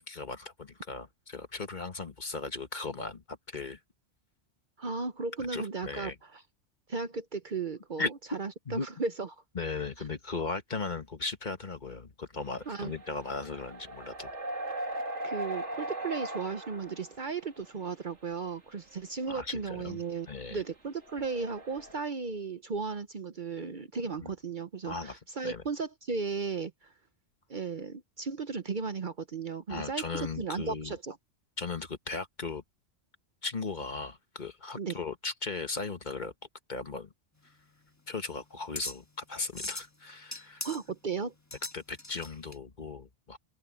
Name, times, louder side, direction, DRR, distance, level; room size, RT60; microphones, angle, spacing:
voice 1, 0.0-3.8 5.5-6.1 8.0-8.1 8.7-8.9 9.5-14.3 19.3-20.0 20.3-20.6 24.2-24.3 24.9-25.6 29.7-30.9 31.6-32.6 33.4-36.3 36.7-37.1 38.1-40.7 41.7-43.4, left 4 dB, 40° left, 1.5 m, -37 dB
voice 2, 4.8-6.4 6.9-9.4 12.7-12.9 14.9-15.0 15.2-26.9 27.5-30.0 30.4-31.2 34.8-35.0 40.6-41.3, right 4 dB, 45° right, 0.9 m, -35 dB
sound 1, 12.4-17.9 18.7-18.8 19.2-19.3 19.6-19.7 21.0-22.0, right 1 dB, 75° right, 3.2 m, -39 dB
sound 2, 37.4-42.6, left 2 dB, 15° left, 1.5 m, -42 dB
open air
omnidirectional pair, 1.2 m